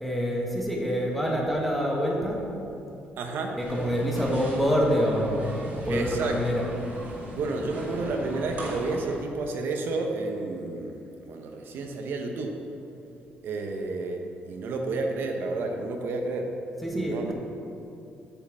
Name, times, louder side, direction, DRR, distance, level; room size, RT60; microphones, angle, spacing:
voice 1, 0.0-2.4 3.6-5.4 5.7-6.6 16.8-17.3, equal, ahead, -2 dB, 1.4 m, -26 dB
voice 2, 3.2-3.6 5.9-6.4 7.3-11.0 11.3-12.6 13.4-16.5 16.9-17.3, right 3 dB, 60° right, 3 dB, 0.9 m, -31 dB
sound 1, 3.6-9.2, right 1 dB, 40° right, 1.9 m, -39 dB
8.5 x 5.7 x 7.2 m, 2.8 s
cardioid pair, 155°, 4 cm